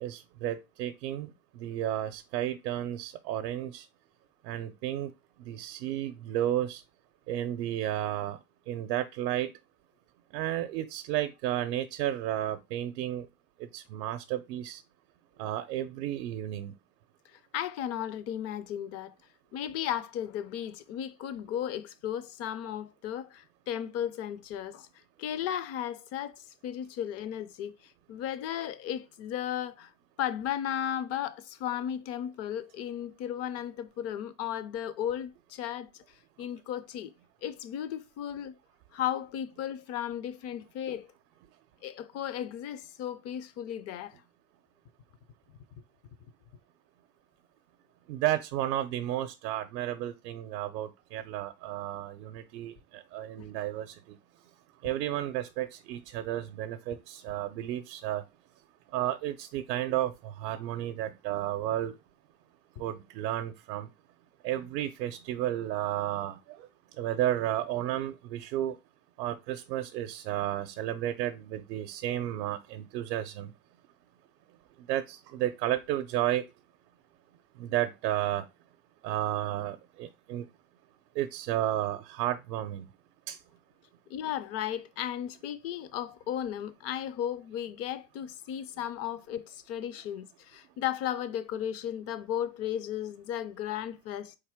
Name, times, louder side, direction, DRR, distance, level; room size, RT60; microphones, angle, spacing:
voice 1, 0.0-3.8 4.4-5.1 5.4-6.8 7.3-8.4 8.7-9.5 10.3-13.3 13.6-14.8 15.4-16.7 48.1-54.2 54.8-58.2 58.9-61.9 62.8-63.9 64.4-66.7 67.0-68.7 69.2-73.5 74.9-76.4 77.6-78.4 79.0-80.5 81.2-82.9 83.3-83.4, right 13 dB, 75° right, 0.6 m, -32 dB
voice 2, 17.5-19.1 19.5-24.9 25.2-29.9 30.2-35.9 36.4-37.1 37.4-38.6 38.9-41.1 41.8-44.2 53.4-53.5 84.1-94.4, left 10 dB, 35° left, 0.4 m, -35 dB
4.3 x 3.5 x 3.5 m
hypercardioid pair, 100°, 49 cm